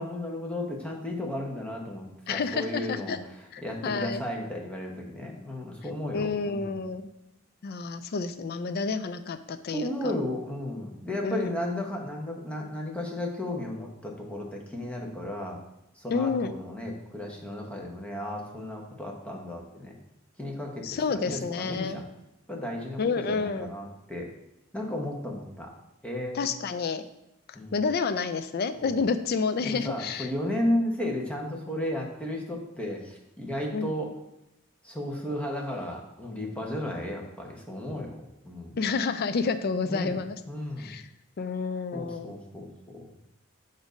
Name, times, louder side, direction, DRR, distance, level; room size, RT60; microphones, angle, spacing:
voice 1, 0.0-6.8 9.7-15.6 16.0-19.9 20.4-22.0 22.5-24.3 24.7-25.7 26.0-26.5 27.5-27.8 28.7-29.0 29.6-34.1 34.8-38.8 39.9-40.2 40.5-40.9 41.9-43.1, left 1 dB, 5° left, -1 dB, 0.9 m, -34 dB
voice 2, 2.3-3.2 3.5-4.2 6.1-7.1 7.6-10.1 11.2-11.7 16.1-16.5 20.8-22.0 23.0-23.7 26.3-27.0 27.7-30.3 33.7-33.9 38.8-40.3 40.8-41.0 41.4-42.3, left 4 dB, 50° left, 10 dB, 0.4 m, -29 dB
7.0 x 2.6 x 5.1 m, 0.86 s
head